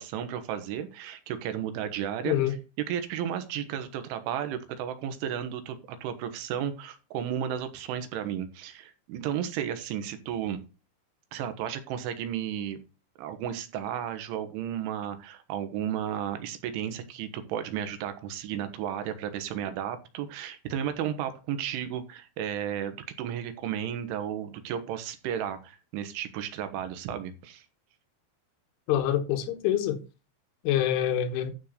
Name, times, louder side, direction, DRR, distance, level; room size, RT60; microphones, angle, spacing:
voice 1, 0.0-2.4 2.9-10.6 11.3-12.8 13.2-27.7, right 9 dB, 85° right, 3.7 m, -33 dB
voice 2, 2.3-2.6 28.9-30.0 30.6-31.5, left 11 dB, 90° left, 3.7 m, -26 dB
12.0 x 4.4 x 6.7 m
omnidirectional pair, 5.4 m